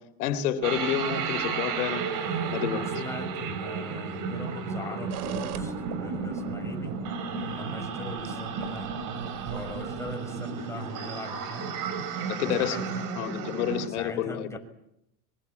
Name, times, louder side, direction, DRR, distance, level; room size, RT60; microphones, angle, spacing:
voice 1, 0.2-2.9 12.3-12.9 13.2-14.5, left 10 dB, 85° left, 9 dB, 3.6 m, -29 dB
sound 1, 0.6-13.9, right 5 dB, 45° right, 5.2 m, -33 dB
voice 2, 2.7-7.0 7.5-8.9 9.5-11.7 12.4-13.1 13.9-14.6, left 2 dB, 5° left, 2 dB, 6.3 m, -41 dB
sound 2, 5.1-10.2, right 13 dB, 75° right, 3.0 m, -43 dB
26.5 x 23.5 x 8.6 m, 0.82 s
supercardioid pair, 135°, 44 cm